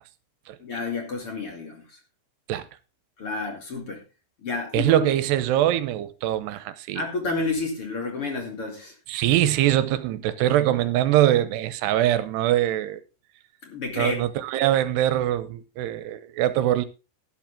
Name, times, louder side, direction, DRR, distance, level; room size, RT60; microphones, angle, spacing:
voice 1, 0.6-2.0 3.2-4.0 4.4-5.1 6.9-8.9 13.6-14.3, left 3 dB, 40° left, 2.9 m, -30 dB
voice 2, 4.7-7.0 9.1-13.0 14.0-16.9, right 13 dB, 85° right, 2.9 m, -23 dB
12.5 x 12.0 x 3.7 m
omnidirectional pair, 4.8 m